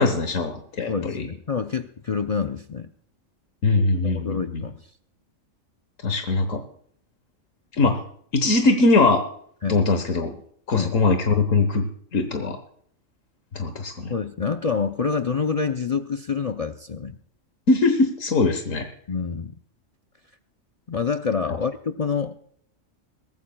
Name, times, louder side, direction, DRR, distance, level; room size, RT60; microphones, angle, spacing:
voice 1, 0.0-1.3 3.6-4.6 6.0-6.6 7.8-8.0 8.3-9.2 9.7-10.3 10.7-11.9 12.1-12.6 13.5-14.1 17.7-18.9, left 3 dB, 75° left, 7 dB, 1.5 m, -21 dB
voice 2, 0.9-2.9 4.0-4.8 9.6-9.9 10.7-10.9 14.1-17.2 19.1-19.5 20.9-22.3, left 5 dB, 50° left, 7 dB, 0.4 m, -27 dB
22.5 x 14.0 x 2.3 m, 0.63 s
omnidirectional pair, 1.4 m